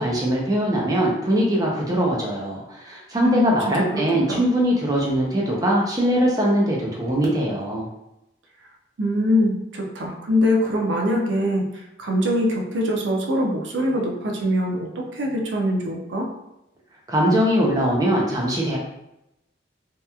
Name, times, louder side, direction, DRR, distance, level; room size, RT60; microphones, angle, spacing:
voice 1, 0.0-7.9 17.1-18.8, equal, 20° right, -3 dB, 0.4 m, -21 dB
voice 2, 3.2-4.0 4.3-4.4 9.0-16.3, left 1 dB, 75° right, 0 dB, 0.5 m, -23 dB
2.8 x 2.3 x 2.2 m, 0.87 s
head